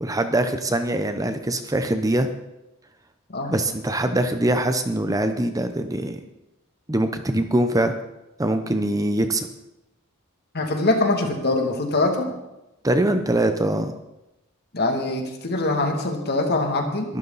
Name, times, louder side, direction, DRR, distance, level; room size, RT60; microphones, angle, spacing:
voice 1, 0.0-2.3 3.5-6.2 6.9-7.9 8.4-9.5 12.8-13.9 17.1-17.2, right 1 dB, 15° right, 8 dB, 0.8 m, -23 dB
voice 2, 10.5-12.3 14.7-17.1, left 2 dB, 50° left, 3 dB, 2.6 m, -23 dB
22.5 x 12.5 x 4.2 m, 0.96 s
head